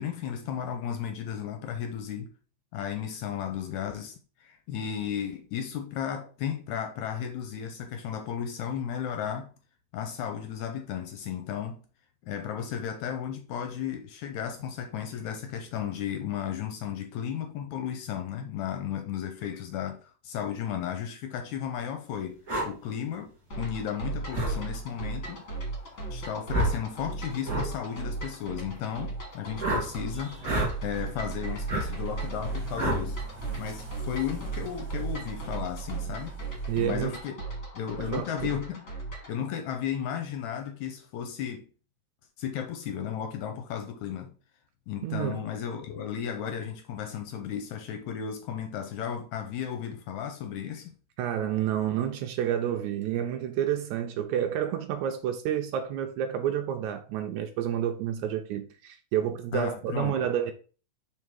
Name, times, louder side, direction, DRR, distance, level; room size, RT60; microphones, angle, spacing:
voice 1, 0.0-2.3 2.7-9.5 9.9-11.8 12.3-25.4 26.1-30.4 30.8-33.2 33.6-36.4 36.7-37.3 37.7-38.8 39.3-41.7 42.4-44.3 44.9-50.9 59.5-60.2, left 8 dB, 75° left, 1.8 m, -34 dB
sound 1, 22.5-22.7 24.3-24.6 26.5-26.8 27.4-27.7 29.6-29.9 30.4-30.7 31.7-31.9 32.8-33.0, right 1 dB, 30° right, 2.0 m, -27 dB
sound 2, 23.5-39.4, right 3 dB, 40° left, 1.2 m, -37 dB
sound 3, 29.7-37.2, right 6 dB, 50° right, 1.6 m, -39 dB
voice 2, 36.7-37.2 38.0-38.5 45.0-45.4 51.2-60.5, right 10 dB, 85° right, 1.7 m, -29 dB
5.8 x 3.7 x 4.7 m
omnidirectional pair, 4.0 m